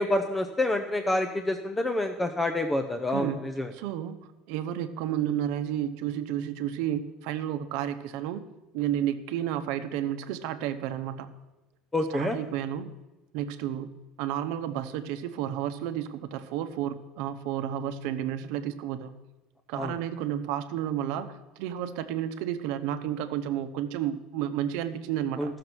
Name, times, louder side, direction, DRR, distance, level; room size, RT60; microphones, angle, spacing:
voice 1, 0.0-3.7 11.9-12.4 19.7-19.9 25.4-25.6, left 1 dB, 10° left, 6 dB, 0.6 m, -28 dB
voice 2, 3.7-4.2 4.5-8.4 8.7-11.3 12.1-12.9 13.3-13.9 14.2-19.1 19.7-25.5, right 10 dB, 70° right, 9 dB, 0.8 m, -31 dB
13.5 x 6.7 x 6.1 m, 1.1 s
cardioid pair, 140°, 0 cm